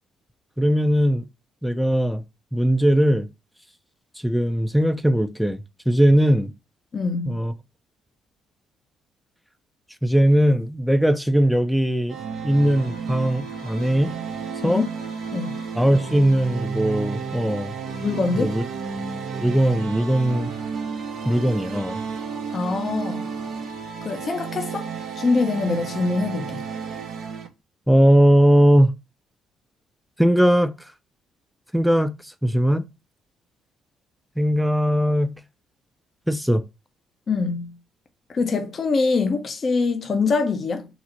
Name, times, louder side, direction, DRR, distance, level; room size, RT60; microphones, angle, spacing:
voice 1, 0.6-1.3 1.6-2.2 2.5-3.3 4.2-6.5 7.3-7.5 10.0-12.2 12.4-14.1 14.6-14.8 15.7-17.7 18.4-18.6 19.4-20.5 21.3-22.0 27.9-28.9 30.2-30.7 31.7-32.1 32.4-32.8 34.4-35.3 36.3-36.6, equal, ahead, 0.4 m, -19 dB
voice 2, 6.9-7.4 14.6-14.9 15.3-15.6 18.0-18.6 22.5-23.2 24.0-24.9 25.2-26.7 37.3-37.7 38.3-40.9, left 4 dB, 45° left, 0.6 m, -24 dB
sound 1, 12.1-27.5, right 5 dB, 65° right, 0.7 m, -32 dB
2.9 x 2.0 x 3.7 m
supercardioid pair, 60°, 0 cm